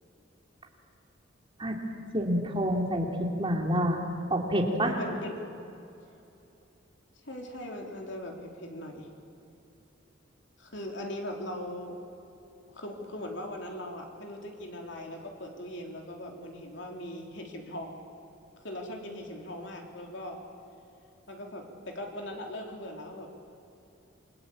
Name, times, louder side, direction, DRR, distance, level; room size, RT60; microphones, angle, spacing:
voice 1, 2.1-4.0 4.3-5.0, equal, 25° right, 2 dB, 3.0 m, -27 dB
voice 2, 4.8-5.4 7.2-9.1 10.6-12.0 12.7-18.0 18.6-20.4 21.3-23.3, left 1 dB, 65° left, 2 dB, 4.0 m, -40 dB
28.5 x 23.0 x 8.8 m, 2.8 s
head